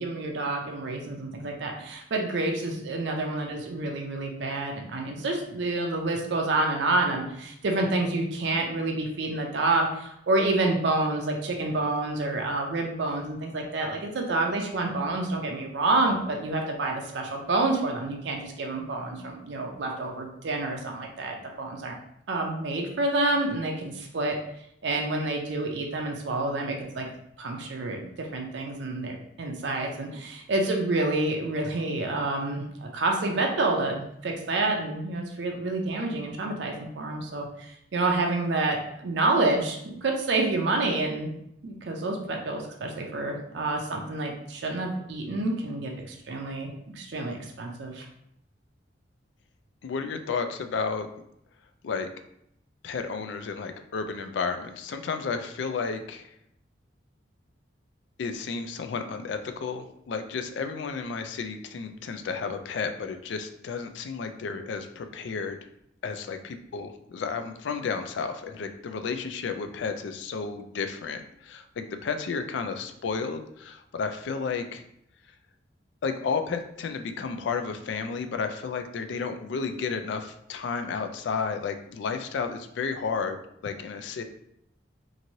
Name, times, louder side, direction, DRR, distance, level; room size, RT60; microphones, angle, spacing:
voice 1, 0.0-21.9 22.3-24.3 24.8-27.1 27.4-41.3 41.6-46.7 47.0-48.1, right 2 dB, 70° right, 1 dB, 0.5 m, -28 dB
voice 2, 49.8-51.1 51.8-52.1 52.8-56.3 58.2-65.6 66.0-74.8 76.0-83.4 83.6-84.2, left 5 dB, 75° left, 7 dB, 0.3 m, -32 dB
3.0 x 2.6 x 2.7 m, 0.74 s
head